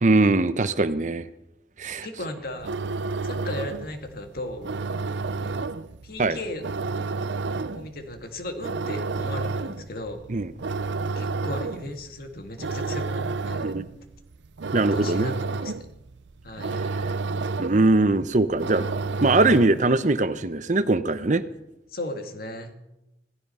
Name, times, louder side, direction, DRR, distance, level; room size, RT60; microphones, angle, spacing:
voice 1, 0.0-1.3 1.8-2.1 6.2-6.4 10.3-10.5 13.6-13.9 14.7-15.3 17.6-18.9 19.2-21.4, right 2 dB, 45° right, 13 dB, 0.8 m, -21 dB
voice 2, 2.0-2.7 3.2-4.8 6.0-6.6 7.7-10.3 11.1-13.7 14.8-15.7 16.4-16.8 21.9-22.7, left 1 dB, 55° left, 5 dB, 2.0 m, -36 dB
sound 1, 2.5-20.0, right 3 dB, 85° right, 0.6 m, -31 dB
16.5 x 15.0 x 5.6 m, 0.90 s
head